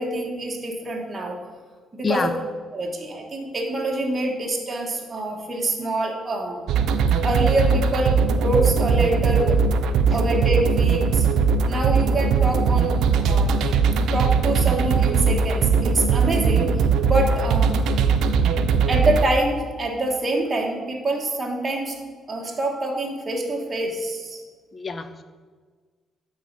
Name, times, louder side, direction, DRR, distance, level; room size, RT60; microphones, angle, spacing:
voice 1, 0.0-1.4 2.0-2.4 2.7-6.7 7.2-9.6 10.1-11.3 11.6-16.7 17.1-17.8 18.9-21.9 22.3-24.4, right 2 dB, 30° right, 0 dB, 1.3 m, -26 dB
sound 1, 6.7-19.3, right 5 dB, 85° right, 0.4 m, -20 dB
voice 2, 24.7-25.2, left 4 dB, 35° left, 10 dB, 0.7 m, -26 dB
9.3 x 4.1 x 5.2 m, 1.5 s
cardioid pair, 90°, 0 cm